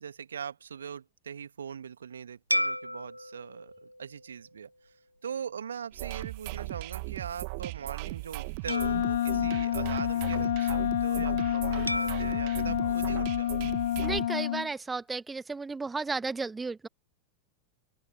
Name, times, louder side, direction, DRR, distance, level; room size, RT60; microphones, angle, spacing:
voice 1, 0.0-5.0 5.2-13.8, right 7 dB, 70° right, 1.9 m, -41 dB
sound 1, 2.5-5.2 5.8-6.0 8.7-10.5 11.9-14.2, equal, 90° left, 1.4 m, -37 dB
sound 2, 5.9-14.3, right 31 dB, 45° right, 0.9 m, -37 dB
Wind instrument woodwind instrument, 8.7-14.7, left 11 dB, 60° left, 1.3 m, -29 dB
voice 2, 14.0-16.9, right 4 dB, 10° right, 1.0 m, -34 dB
open air
figure-of-eight pair, 90°, 0 cm